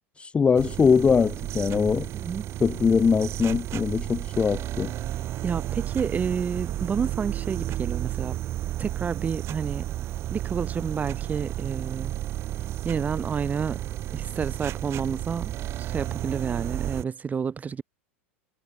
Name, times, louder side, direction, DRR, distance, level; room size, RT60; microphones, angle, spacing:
voice 1, 0.2-2.1 2.6-4.9, left 6 dB, 15° left, 0.3 m, -22 dB
sound 1, 0.6-17.0, right 13 dB, 40° right, 0.9 m, -32 dB
voice 2, 2.1-2.5 5.4-8.4 8.8-9.8 10.3-12.1 12.8-13.8 14.1-15.5 15.8-17.8, right 6 dB, 20° right, 1.8 m, -30 dB
hypercardioid pair, 90°, 7 cm